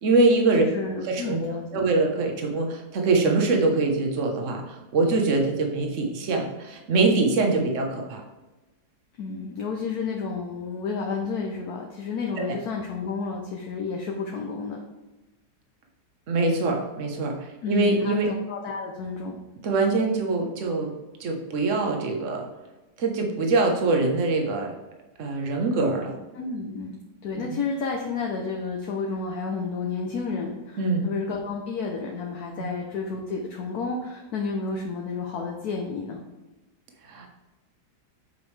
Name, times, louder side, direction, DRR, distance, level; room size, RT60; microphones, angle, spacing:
voice 1, 0.0-0.6 1.1-8.2 16.3-18.3 19.6-20.9 21.2-22.5 23.0-24.7 25.2-26.1 27.4-27.5 30.8-31.1 32.6-32.7 37.1-37.3, right 3 dB, 50° right, 2 dB, 1.3 m, -23 dB
voice 2, 0.5-1.9 9.2-14.8 17.6-19.4 26.3-27.0 27.2-36.2, left 4 dB, 65° left, 0 dB, 1.3 m, -31 dB
8.2 x 5.3 x 3.3 m, 1.1 s
omnidirectional pair, 1.9 m